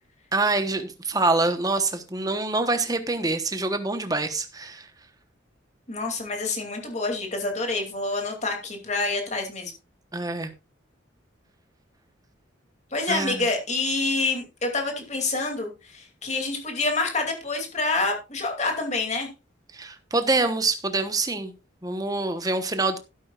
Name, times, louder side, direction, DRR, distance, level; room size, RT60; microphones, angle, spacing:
voice 1, 0.3-4.9 10.1-10.5 13.1-13.4 19.7-21.5 21.8-23.0, right 3 dB, 20° right, 1.0 m, -25 dB
voice 2, 5.9-9.7 12.9-19.3, left 3 dB, 35° left, 2.7 m, -27 dB
12.5 x 11.5 x 2.4 m
head